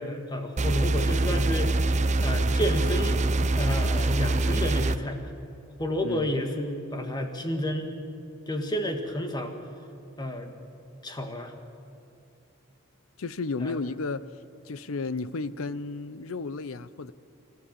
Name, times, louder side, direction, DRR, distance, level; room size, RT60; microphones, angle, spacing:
voice 1, 0.0-1.7 2.2-3.2 3.6-5.3 5.8-7.9 8.5-9.5 10.2-10.5 11.0-11.5 13.6-13.8, equal, 20° left, 5 dB, 1.7 m, -30 dB
sound 1, 0.6-5.0, right 2 dB, 35° right, 0.6 m, -24 dB
voice 2, 6.0-6.3 13.2-14.2 14.6-17.1, left 3 dB, 85° left, 17 dB, 0.6 m, -33 dB
28.0 x 14.0 x 7.5 m, 2.6 s
head